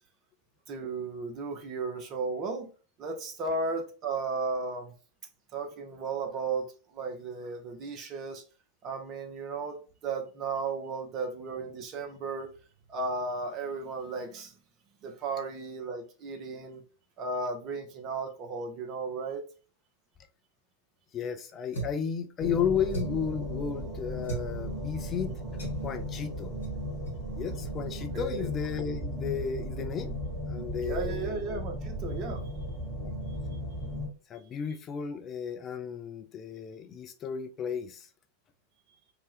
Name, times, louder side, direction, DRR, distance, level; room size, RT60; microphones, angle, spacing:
voice 1, 0.7-2.7 3.0-4.9 5.5-8.4 8.8-12.5 12.9-14.5 15.0-16.8 17.2-19.4 28.1-28.5 30.8-32.4 33.3-33.4, right 3 dB, 35° right, 0.7 m, -35 dB
voice 2, 21.1-25.4 25.8-26.5 27.4-30.1 30.5-31.4 33.0-33.1 34.3-38.1, left 7 dB, 25° left, 0.4 m, -33 dB
sound 1, 21.7-22.1 22.9-23.3 24.2-24.5 25.6-25.9 26.6-26.8 27.1-27.2 27.6-27.8, right 3 dB, 70° left, 1.1 m, -37 dB
sound 2, 22.4-34.1, equal, 10° right, 1.4 m, -36 dB
2.7 x 2.2 x 3.3 m
figure-of-eight pair, 90°, 0 cm